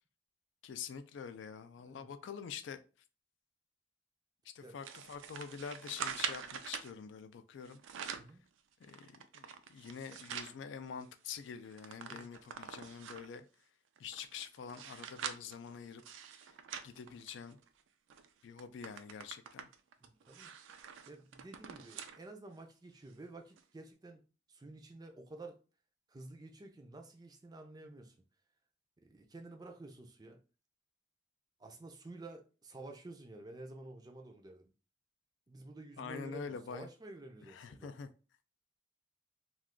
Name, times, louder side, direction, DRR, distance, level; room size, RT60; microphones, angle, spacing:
voice 1, 0.6-2.8 4.5-7.8 8.8-13.5 14.0-16.0 16.4-16.5 16.8-17.6 18.4-19.7 36.0-36.9 37.5-38.1, left 6 dB, 75° left, 0.3 m, -46 dB
voice 2, 1.8-2.1 4.6-4.8 8.2-8.4 12.0-12.3 20.0-20.5 21.1-24.2 24.5-25.6 26.1-28.1 29.0-30.4 31.6-34.7 35.5-37.9, right 2 dB, 20° right, 0.4 m, -51 dB
sound 1, 4.8-6.9 7.6-8.4 8.8-10.6 11.0-11.1 11.4-13.4 14.0-17.7 18.1-18.3 18.6-22.2 22.6-22.7 23.6-23.7, right 7 dB, 85° right, 0.4 m, -45 dB
2.3 x 2.3 x 3.6 m
head